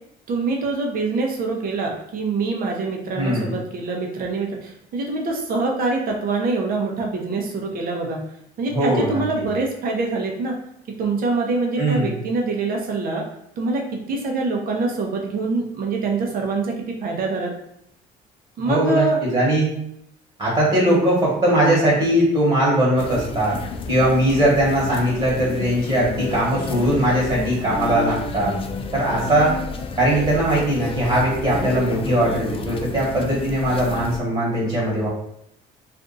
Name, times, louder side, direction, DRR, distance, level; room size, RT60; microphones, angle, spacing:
voice 1, 0.3-8.2 8.6-10.5 11.0-13.2 13.6-17.5 18.6-19.2, right 3 dB, 60° right, 0 dB, 0.8 m, -25 dB
voice 2, 3.1-3.5 8.7-9.2 11.8-12.1 18.7-19.7 20.4-23.6 23.9-28.5 28.9-29.5 30.0-35.1, right 1 dB, 35° right, -5 dB, 1.4 m, -20 dB
sound 1, 23.0-34.2, left 4 dB, 35° left, 0.4 m, -30 dB
2.6 x 2.4 x 3.9 m, 0.76 s
cardioid pair, 110°, 17 cm